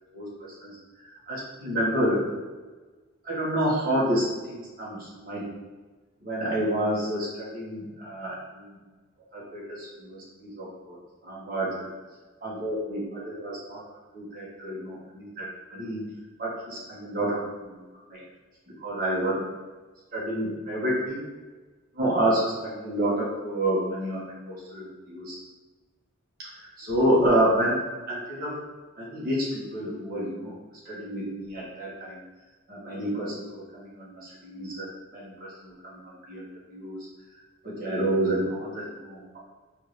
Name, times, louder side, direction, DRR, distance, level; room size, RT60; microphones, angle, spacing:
voice 1, 0.1-0.8 1.0-2.2 3.2-5.4 6.2-8.8 9.3-11.9 12.4-13.8 14.1-16.0 16.4-17.8 18.1-18.2 18.8-19.3 20.1-21.2 21.9-25.4 26.4-27.8 28.1-28.6 29.0-30.5 30.8-32.2 32.7-37.1 37.6-39.4, right 1 dB, 45° right, -6 dB, 1.2 m, -29 dB
3.7 x 2.5 x 3.1 m, 1.3 s
head